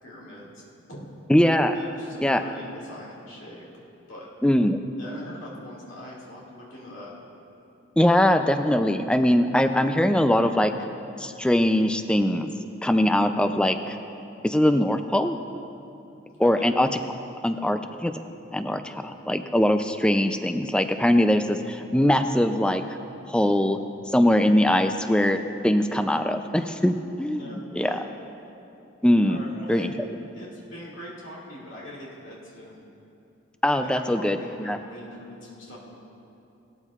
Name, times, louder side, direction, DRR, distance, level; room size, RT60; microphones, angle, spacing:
voice 1, 0.0-1.1 1.7-3.6 4.1-4.3 5.0-7.1 16.4-16.7 27.4-28.0 29.3-29.9 30.3-32.8 33.7-35.9, left 1 dB, 85° left, -6 dB, 2.2 m, -42 dB
voice 2, 1.3-1.7 2.2-2.4 4.4-4.8 8.0-10.7 11.2-12.5 12.8-14.0 14.4-15.4 16.4-17.0 17.4-18.1 18.5-23.0 23.3-23.8 24.1-28.0 29.0-29.4 29.7-29.9 33.6-34.8, left 1 dB, 5° left, 8 dB, 0.4 m, -22 dB
18.5 x 13.5 x 2.4 m, 2.8 s
head